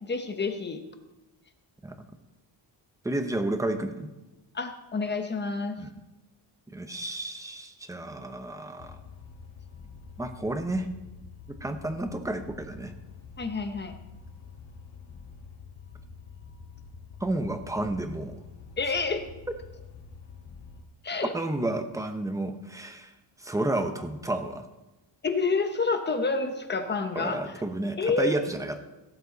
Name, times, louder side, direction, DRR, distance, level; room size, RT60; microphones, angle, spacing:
voice 1, 0.0-0.8 4.5-5.8 13.4-13.9 18.8-19.2 21.0-21.3 25.2-27.6 28.0-28.4, left 4 dB, 25° left, 7 dB, 1.0 m, -28 dB
voice 2, 3.0-4.1 5.8-5.9 6.7-9.0 10.2-10.9 11.6-12.9 17.2-18.3 21.3-23.1 23.4-24.6 27.1-28.8, right 1 dB, 5° right, 7 dB, 0.8 m, -31 dB
sound 1, 8.8-20.8, left 5 dB, 70° left, 1.8 m, -47 dB
17.5 x 7.7 x 4.0 m, 1.0 s
cardioid pair, 150°, 45 cm